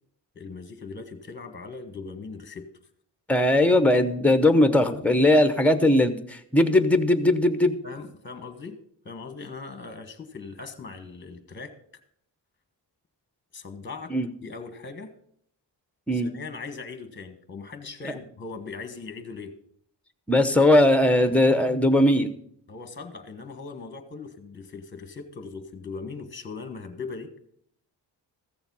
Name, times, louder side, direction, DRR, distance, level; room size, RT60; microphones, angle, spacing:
voice 1, 0.3-2.6 7.8-8.8 9.0-11.7 13.5-14.1 14.4-15.1 16.1-19.5 22.7-27.3, left 4 dB, 25° left, 8 dB, 1.2 m, -39 dB
voice 2, 3.3-7.7 14.1-14.3 16.1-16.3 20.3-22.3, left 1 dB, 5° left, 10 dB, 0.8 m, -19 dB
14.5 x 7.1 x 5.5 m, 0.69 s
wide cardioid pair, 120°, 43 cm